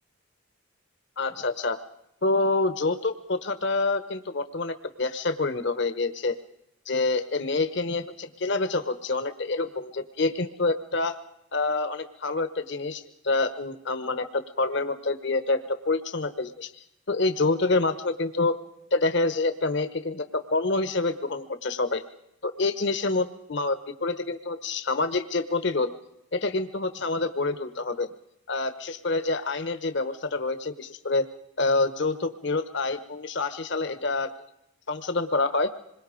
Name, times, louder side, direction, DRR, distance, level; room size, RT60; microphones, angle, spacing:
voice 1, 1.2-1.8 2.2-6.3 6.9-11.2 11.5-16.7 17.1-18.6 18.9-22.0 22.4-25.9 26.3-28.1 28.5-31.2 31.6-34.3 34.9-35.7, left 3 dB, 55° left, 10 dB, 1.1 m, -27 dB
26.5 x 21.5 x 5.1 m, 0.83 s
head